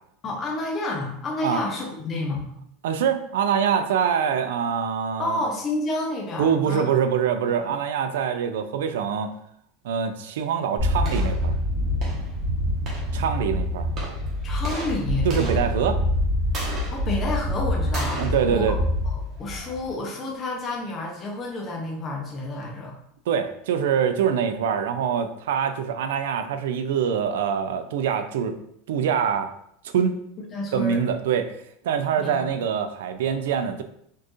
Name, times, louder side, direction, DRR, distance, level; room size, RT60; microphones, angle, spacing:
voice 1, 0.2-2.5 5.2-6.9 7.6-7.7 14.4-15.3 16.7-18.7 19.0-22.9 30.5-31.0 32.2-32.5, left 2 dB, 20° left, -1 dB, 0.6 m, -30 dB
voice 2, 2.8-5.4 6.4-9.3 9.8-11.5 13.1-13.9 15.2-16.0 18.2-18.8 23.3-28.6 28.9-29.5 29.8-30.1 30.7-31.5 31.8-33.8, right 7 dB, 85° right, 9 dB, 0.4 m, -24 dB
sound 1, 10.8-19.9, left 1 dB, 30° right, 1.0 m, -26 dB
4.4 x 2.4 x 3.0 m, 0.71 s
supercardioid pair, 175°, 0 cm